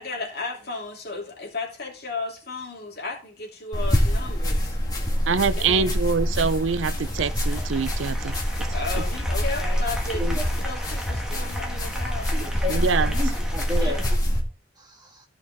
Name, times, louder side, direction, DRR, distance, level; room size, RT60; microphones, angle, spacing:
voice 1, 0.0-4.8 5.6-6.0 8.7-13.1 13.8-14.2, left 3 dB, 50° left, 3.0 m, -34 dB
sound 1, 3.7-14.4, equal, 20° left, 1.8 m, -25 dB
Applause, 5.0-14.2, equal, 5° right, 1.5 m, -39 dB
voice 2, 5.3-8.7 12.7-13.1, right 5 dB, 70° right, 0.5 m, -25 dB
voice 3, 10.1-10.4 12.3-12.7 13.1-14.0 14.8-15.2, left 1 dB, 20° right, 1.7 m, -32 dB
14.0 x 5.6 x 3.6 m
head